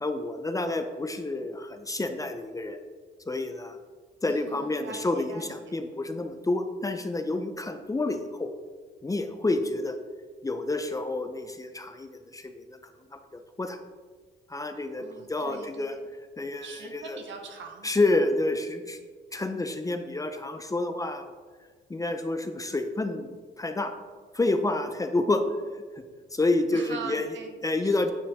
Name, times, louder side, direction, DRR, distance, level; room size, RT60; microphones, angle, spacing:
voice 1, 0.0-2.8 3.3-3.8 4.2-8.5 9.0-10.0 10.4-12.6 13.1-13.8 14.5-15.9 16.4-17.2 17.8-19.0 19.3-21.3 21.9-23.9 24.3-25.4 25.7-25.8 26.3-27.3 27.6-28.1, left 2 dB, 15° left, 7 dB, 0.6 m, -29 dB
voice 2, 4.3-5.7 15.0-16.1 16.6-17.9 26.7-28.1, right 5 dB, 70° right, 3 dB, 1.4 m, -42 dB
9.1 x 6.9 x 3.6 m, 1.5 s
cardioid pair, 90°, 20 cm